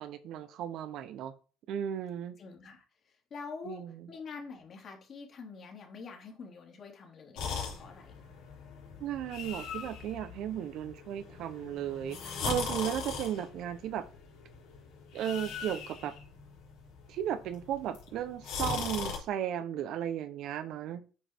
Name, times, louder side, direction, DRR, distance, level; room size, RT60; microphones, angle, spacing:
voice 1, 0.0-1.3 1.7-2.3 3.6-4.1 9.0-14.1 15.1-16.1 17.1-21.0, right 10 dB, 65° right, 12 dB, 0.9 m, -35 dB
voice 2, 2.4-2.8 3.3-8.1 12.4-12.5, left 5 dB, 45° left, 2 dB, 2.7 m, -46 dB
sound 1, 7.3-19.2, left 5 dB, 85° left, 3.5 m, -40 dB
8.4 x 5.1 x 4.5 m, 0.36 s
cardioid pair, 120°, 0 cm